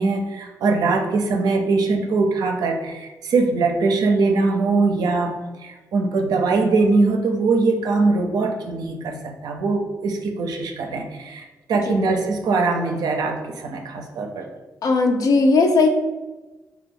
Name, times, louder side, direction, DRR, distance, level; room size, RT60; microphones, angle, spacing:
voice 1, 0.0-5.4 5.6-14.5, right 3 dB, 80° right, 3 dB, 0.4 m, -21 dB
voice 2, 14.8-15.9, left 3 dB, 65° left, 4 dB, 0.4 m, -18 dB
2.7 x 2.2 x 3.6 m, 1.2 s
cardioid pair, 80°, 7 cm